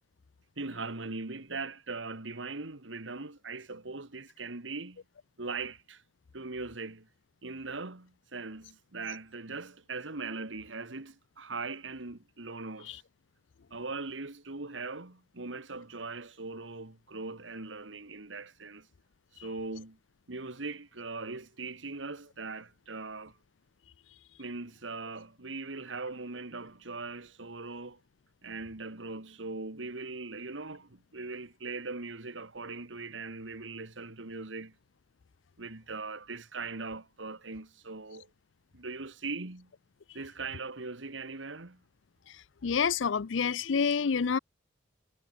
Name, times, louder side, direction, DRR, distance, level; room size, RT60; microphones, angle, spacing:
voice 1, 0.6-5.0 5.4-6.0 6.3-7.1 7.4-13.0 13.7-18.9 19.3-20.0 20.3-23.4 24.4-28.0 28.4-34.7 35.6-38.3 38.7-39.7 40.1-41.8, right 3 dB, 85° right, 2.0 m, -40 dB
voice 2, 42.6-44.4, left 6 dB, 85° left, 0.5 m, -28 dB
head